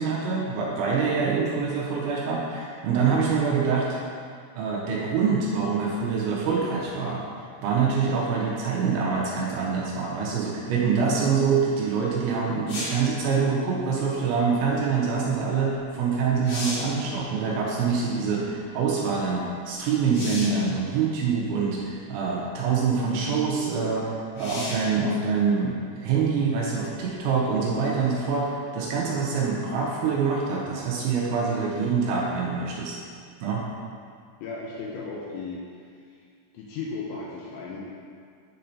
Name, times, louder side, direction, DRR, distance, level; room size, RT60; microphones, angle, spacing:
voice 1, 0.0-3.9 4.5-7.3 7.6-32.9 33.4-33.6, right 5 dB, 85° right, -4 dB, 2.8 m, -25 dB
sound 1, 12.7-13.1 15.8-15.9 16.3-17.0 20.1-20.7 21.7-21.8 24.4-24.9 28.5-28.6, left 1 dB, 65° left, 3.5 m, -34 dB
voice 2, 34.4-35.6 36.1-36.2 36.5-37.8, left 4 dB, 80° left, -3 dB, 2.7 m, -35 dB
10.0 x 4.3 x 2.7 m, 2.2 s
omnidirectional pair, 5.7 m